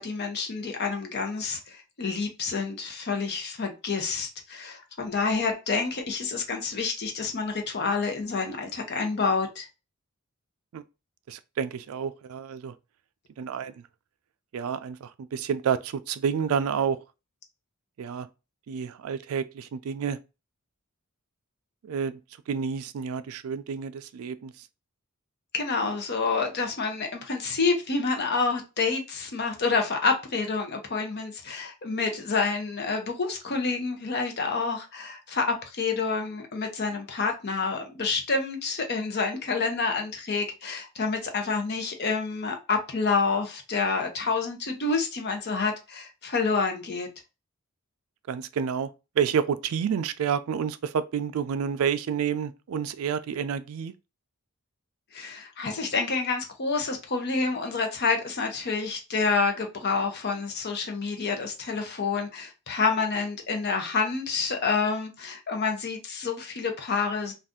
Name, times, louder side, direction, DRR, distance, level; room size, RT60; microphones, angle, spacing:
voice 1, 0.0-9.7 25.5-47.1 55.1-67.3, left 4 dB, 50° left, 0.7 m, -28 dB
voice 2, 11.3-12.7 13.4-13.8 14.5-17.0 18.0-18.3 18.7-20.2 21.8-22.2 22.5-24.7 48.3-48.9 49.2-53.9, right 7 dB, 70° right, 0.3 m, -29 dB
2.6 x 2.4 x 3.5 m
head